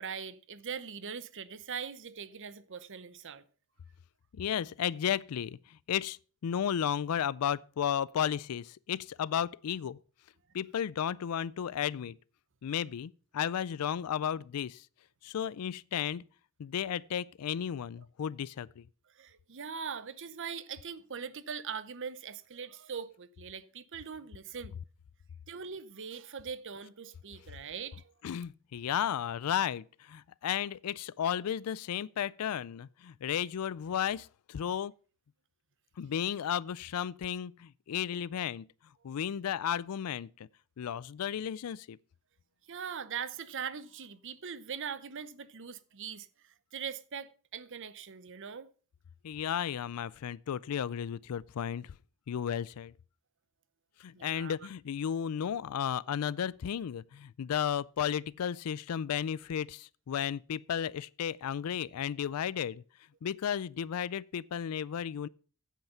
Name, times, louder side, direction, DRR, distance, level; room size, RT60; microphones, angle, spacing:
voice 1, 0.0-3.4 19.1-24.7 25.5-28.1 42.7-48.7 54.1-54.6, right 6 dB, 55° right, 0.8 m, -41 dB
voice 2, 4.3-6.2 6.4-10.0 10.5-12.2 12.6-14.9 15.2-16.2 16.6-18.8 28.2-34.9 36.0-38.7 39.0-40.5 40.8-42.0 49.2-51.9 52.3-52.9 54.0-62.8 63.2-65.3, left 9 dB, 85° left, 0.4 m, -34 dB
9.1 x 8.0 x 5.6 m
head